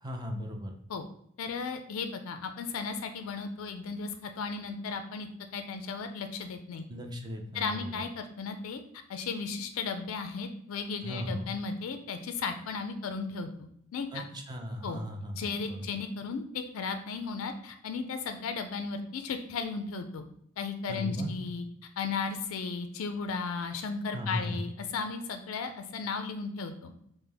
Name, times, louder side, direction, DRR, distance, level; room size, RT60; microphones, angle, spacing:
voice 1, 0.0-0.8 6.9-8.0 11.0-11.5 14.1-15.9 20.9-21.3 24.1-24.6, equal, 20° right, 3 dB, 0.5 m, -37 dB
voice 2, 1.4-6.8 7.5-8.8 9.1-14.3 14.8-15.0 15.3-20.2 20.6-21.7 22.0-26.9, left 5 dB, 70° left, 7 dB, 0.4 m, -35 dB
5.1 x 2.1 x 3.3 m, 0.73 s
head